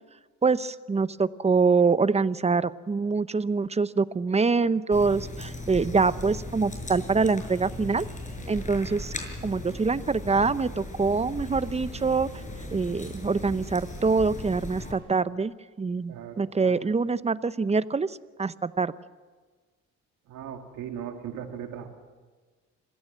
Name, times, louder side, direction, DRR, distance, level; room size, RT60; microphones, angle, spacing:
voice 1, 0.4-8.0 8.5-9.1 9.4-12.3 12.7-18.9, right 4 dB, 20° right, 15 dB, 0.7 m, -25 dB
sound 1, 4.9-14.9, left 1 dB, 25° left, 6.2 m, -38 dB
voice 2, 16.1-16.7 20.3-21.9, right 8 dB, 85° right, 4 dB, 2.6 m, -38 dB
26.5 x 16.5 x 7.5 m, 1.4 s
cardioid pair, 90°, 30 cm